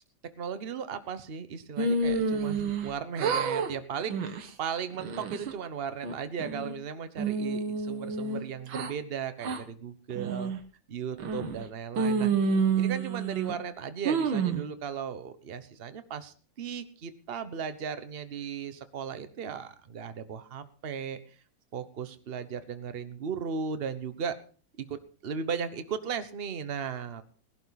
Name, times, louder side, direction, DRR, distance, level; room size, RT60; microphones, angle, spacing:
voice 1, 0.4-10.5 10.9-12.3 12.7-21.2 21.7-24.4 24.8-27.2, right 7 dB, 40° right, 11 dB, 1.0 m, -36 dB
sound 1, 1.8-2.9 3.2-3.7 4.1-4.5 5.0-5.5 6.0-6.8 7.2-8.9 9.4-9.6 10.2-10.6 11.2-11.6 12.0-13.6 14.1-14.6, right 4 dB, 90° right, 2.1 m, -29 dB
18.5 x 11.5 x 4.1 m, 0.40 s
omnidirectional pair, 2.1 m